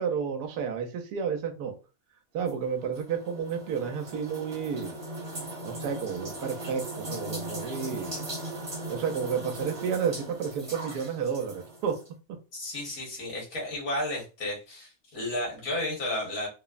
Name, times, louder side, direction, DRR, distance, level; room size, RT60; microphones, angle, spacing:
voice 1, 0.0-1.7 2.3-5.0 5.6-8.2 8.9-12.0 12.3-12.4, right 6 dB, 90° right, 5 dB, 1.2 m, -31 dB
sound 1, 2.5-12.1, right 1 dB, 30° right, 0.7 m, -39 dB
voice 2, 12.5-16.5, left 1 dB, 55° left, -2 dB, 1.5 m, -33 dB
3.2 x 2.0 x 2.3 m, 0.32 s
omnidirectional pair, 1.7 m